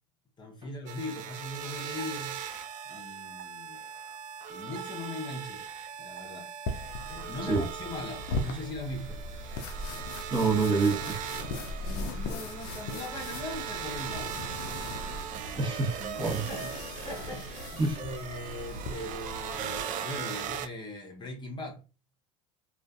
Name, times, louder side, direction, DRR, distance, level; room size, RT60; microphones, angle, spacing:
voice 1, 0.4-2.4 2.9-3.8 4.5-5.6 6.0-6.5 7.1-9.2 11.8-14.4 15.5-16.7 17.0-21.8, left 2 dB, 25° left, 0.8 m, -40 dB
sound 1, 0.9-20.7, right 8 dB, 50° right, 0.4 m, -39 dB
sound 2, 6.7-19.6, left 2 dB, 65° left, 0.5 m, -40 dB
sound 3, 8.9-15.2, equal, 70° right, 1.1 m, -42 dB
voice 2, 10.1-11.2 15.6-16.4 17.8-18.0, right 4 dB, 30° right, 1.0 m, -27 dB
2.5 x 2.4 x 2.3 m
hypercardioid pair, 80°, 17 cm